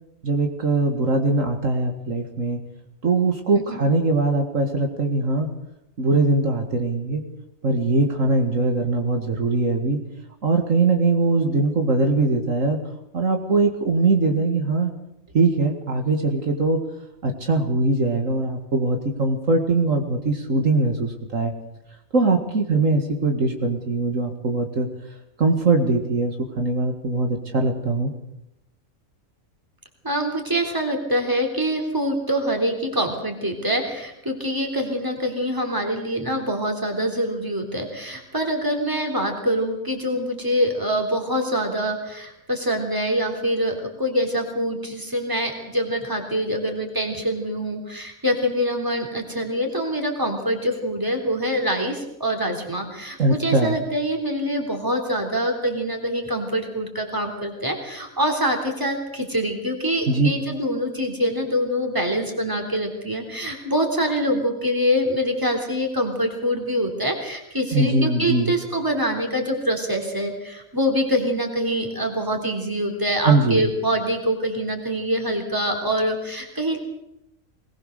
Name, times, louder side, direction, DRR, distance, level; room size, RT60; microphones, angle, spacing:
voice 1, 0.2-2.6 3.0-5.5 6.0-7.2 7.6-10.0 10.4-12.8 13.1-14.9 15.3-16.8 17.2-21.5 22.1-24.9 25.4-28.1 53.2-53.8 60.1-60.3 67.7-68.5 73.2-73.7, right 3 dB, 65° right, 4 dB, 2.4 m, -21 dB
voice 2, 30.0-76.8, equal, 15° right, 3 dB, 3.6 m, -25 dB
21.5 x 20.0 x 6.7 m, 0.84 s
omnidirectional pair, 1.4 m